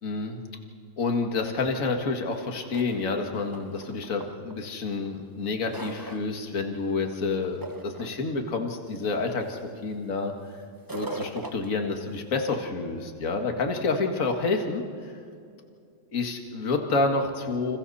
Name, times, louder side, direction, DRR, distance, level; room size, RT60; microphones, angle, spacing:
voice 1, 0.0-0.4 1.0-10.3 10.9-15.1 16.1-17.8, left 3 dB, 40° left, 3 dB, 2.2 m, -29 dB
sound 1, 2.4-2.5 2.7-4.5 5.1-6.4 6.8-7.2 7.4-8.2 8.8-9.0 9.4-9.7 10.7-12.3, right 2 dB, 20° right, 0.6 m, -39 dB
29.5 x 28.0 x 4.2 m, 2.4 s
omnidirectional pair, 2.2 m